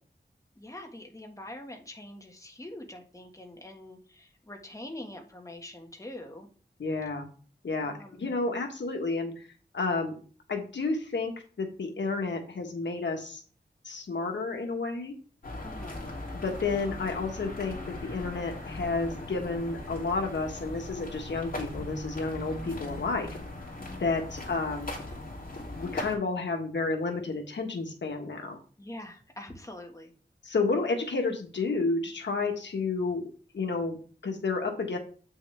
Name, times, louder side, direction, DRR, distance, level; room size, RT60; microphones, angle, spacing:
voice 1, 0.5-6.5 7.8-8.4 15.6-16.0 28.8-30.1, left 1 dB, 20° left, 1 dB, 1.7 m, -44 dB
voice 2, 6.8-7.3 7.6-9.4 9.7-10.2 10.5-13.4 13.8-15.1 16.3-23.3 24.0-24.9 25.7-28.6 30.4-33.3 33.5-34.0 34.2-35.0, left 3 dB, 90° left, 3 dB, 1.5 m, -31 dB
sound 1, 15.4-26.1, left 2 dB, 50° left, 3.0 m, -39 dB
8.5 x 6.3 x 3.4 m, 0.40 s
wide cardioid pair, 85°, 18 cm